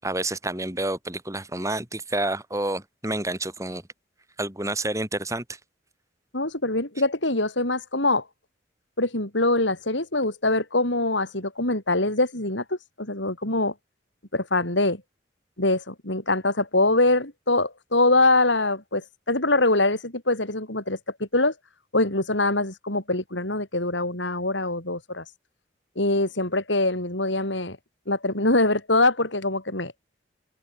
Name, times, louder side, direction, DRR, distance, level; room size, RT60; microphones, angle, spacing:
voice 1, 0.0-3.8 4.4-5.4, right 2 dB, 15° right, 5.6 m, -29 dB
voice 2, 6.3-8.2 9.0-13.7 14.3-15.0 15.6-21.5 21.9-25.2 26.0-27.8 28.1-29.9, left 2 dB, 75° left, 7.3 m, -23 dB
open air
head